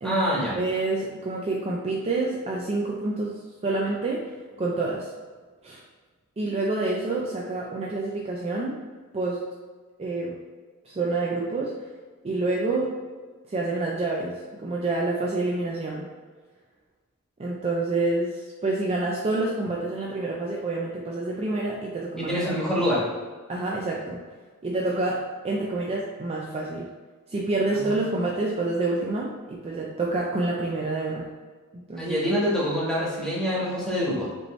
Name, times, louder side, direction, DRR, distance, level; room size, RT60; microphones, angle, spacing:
voice 1, 0.0-0.5 22.2-23.0 27.7-28.0 32.0-34.3, equal, 5° left, -7 dB, 1.3 m, -25 dB
voice 2, 0.5-5.1 5.6-5.8 6.4-8.8 9.1-9.4 10.0-10.4 10.9-11.8 12.2-13.0 13.5-16.1 17.4-22.3 23.5-24.2 24.6-26.9 27.3-31.3 31.9-32.2, right 2 dB, 25° right, -3 dB, 0.4 m, -28 dB
5.2 x 3.1 x 3.1 m, 1.4 s
head